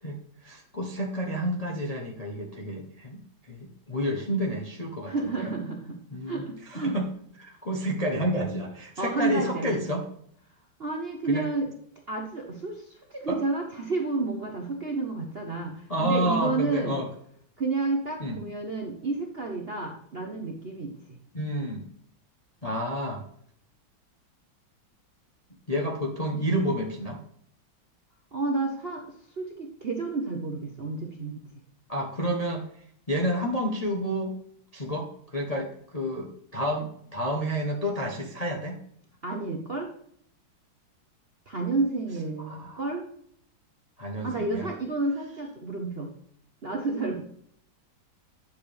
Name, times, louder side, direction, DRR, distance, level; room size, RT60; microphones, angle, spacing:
voice 1, 0.0-3.2 3.5-5.6 6.1-6.4 6.7-7.1 7.4-10.0 11.3-11.5 13.3-13.4 15.9-17.1 18.2-18.4 21.3-21.8 22.6-23.2 25.7-27.2 31.9-32.7 33.1-34.3 34.7-38.8 42.5-42.8 44.0-44.7, equal, 30° left, 0 dB, 0.7 m, -30 dB
voice 2, 5.1-6.0 6.3-6.9 9.0-9.7 10.8-11.7 12.1-17.0 17.6-21.2 28.3-29.0 29.4-31.4 39.2-39.9 41.5-43.1 44.2-46.1 46.6-47.2, right 3 dB, 45° right, 2 dB, 0.8 m, -30 dB
9.8 x 6.9 x 3.4 m, 0.65 s
omnidirectional pair, 2.2 m